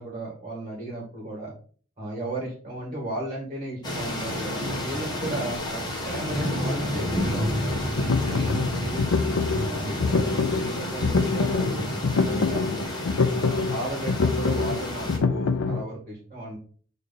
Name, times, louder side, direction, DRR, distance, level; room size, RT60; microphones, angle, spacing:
voice 1, 0.0-1.5 2.0-9.0 9.5-12.9 13.3-16.6, right 1 dB, 30° right, -3 dB, 2.1 m, -35 dB
sound 1, 3.8-15.2, left 1 dB, 20° left, 1.3 m, -30 dB
sound 2, 7.7-15.8, left 4 dB, 80° left, 0.5 m, -25 dB
7.3 x 3.2 x 4.1 m, 0.43 s
head